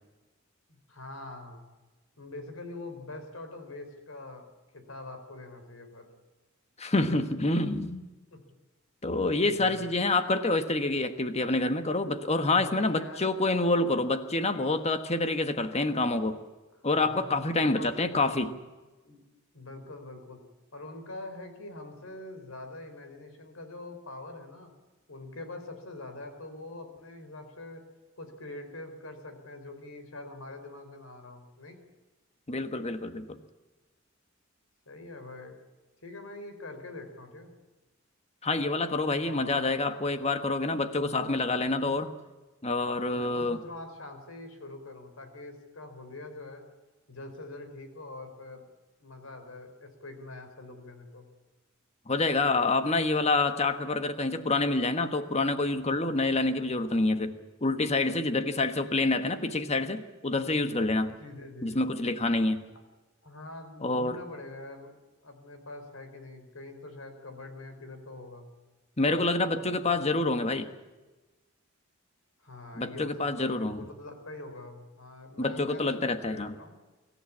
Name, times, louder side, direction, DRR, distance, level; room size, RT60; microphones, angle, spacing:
voice 1, 0.7-1.6 2.2-4.5 4.7-6.1 8.3-8.4 9.5-9.8 12.5-13.3 16.9-18.4 19.0-19.2 19.5-20.4 20.7-24.7 25.1-27.8 28.2-31.8 34.9-35.6 36.0-37.5 39.2-39.7 41.0-41.4 43.1-46.6 47.1-48.7 49.0-51.2 61.2-61.8 63.2-64.9 65.2-68.5 69.0-70.0 72.4-76.8, left 2 dB, 80° left, 8 dB, 4.2 m, -44 dB
voice 2, 6.8-8.1 9.0-16.4 16.8-18.5 32.5-33.4 38.4-42.1 42.6-43.6 52.1-61.2 61.6-62.7 63.8-64.2 69.0-70.7 72.8-73.8 75.4-76.5, left 2 dB, 30° left, 9 dB, 1.4 m, -27 dB
24.5 x 14.5 x 8.6 m, 1.2 s
head